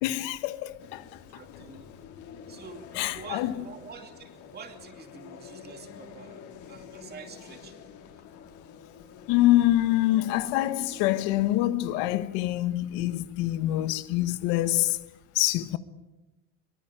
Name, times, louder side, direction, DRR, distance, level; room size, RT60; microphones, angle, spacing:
voice 1, 0.0-1.0 2.9-3.5 9.3-15.0 15.3-15.8, left 15 dB, 80° left, 1.4 m, -25 dB
sound 1, 0.8-11.7, left 7 dB, 50° left, 4.2 m, -48 dB
voice 2, 1.3-1.9 2.5-6.4 6.7-7.8 8.2-8.3, right 5 dB, 25° right, 2.6 m, -46 dB
23.0 x 22.5 x 9.0 m
cardioid pair, 170°, 37 cm